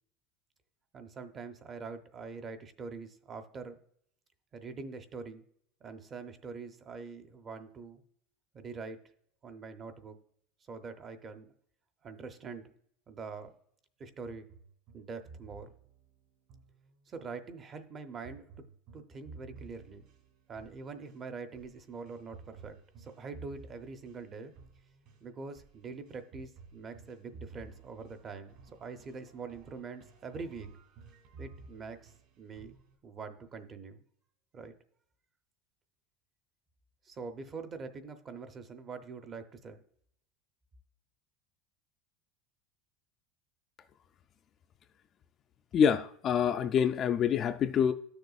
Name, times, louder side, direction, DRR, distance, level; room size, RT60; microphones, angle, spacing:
voice 1, 0.9-3.8 4.5-5.4 5.8-8.0 8.5-9.0 9.4-10.2 10.7-11.5 12.0-12.7 13.1-13.5 14.0-14.5 14.9-15.7 17.1-18.4 18.9-20.1 20.5-24.5 25.2-30.8 31.4-32.8 33.0-34.0 34.5-34.7 37.0-39.8, right 4 dB, 25° right, 0.6 m, -44 dB
sound 1, 14.2-17.3 18.2-33.0, right 4 dB, 55° right, 2.0 m, -54 dB
voice 2, 45.7-47.9, left 7 dB, 30° left, 0.3 m, -26 dB
12.5 x 6.6 x 2.4 m
supercardioid pair, 165°, 0 cm